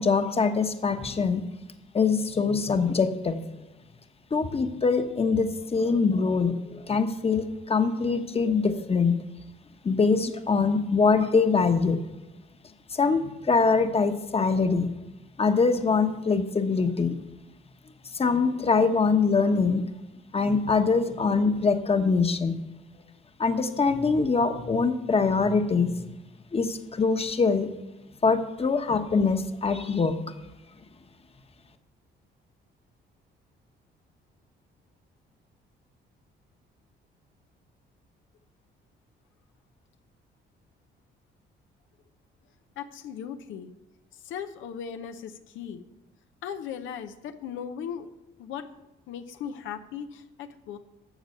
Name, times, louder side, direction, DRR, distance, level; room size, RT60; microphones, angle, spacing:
voice 1, 0.0-1.4 1.9-3.4 4.3-9.2 9.8-12.0 12.9-14.9 15.4-17.2 18.1-19.9 20.3-22.5 23.4-26.1 26.5-27.7 28.2-30.2, left 4 dB, 30° left, 8 dB, 1.1 m, -23 dB
voice 2, 42.8-43.7 44.1-45.8 46.4-48.1 48.4-50.8, left 8 dB, 85° left, 8 dB, 0.8 m, -38 dB
12.5 x 7.4 x 6.7 m, 1.0 s
cardioid pair, 85°, 20 cm